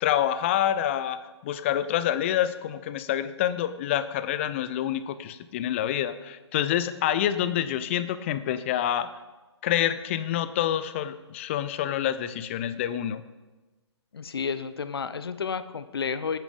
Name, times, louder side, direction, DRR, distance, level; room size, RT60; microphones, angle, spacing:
voice 1, 0.0-9.1 9.6-13.2, left 11 dB, 25° left, 13 dB, 0.6 m, -27 dB
voice 2, 14.1-16.4, left 6 dB, 55° left, 13 dB, 0.9 m, -31 dB
18.0 x 9.0 x 5.3 m, 1.2 s
figure-of-eight pair, 135°, 15 cm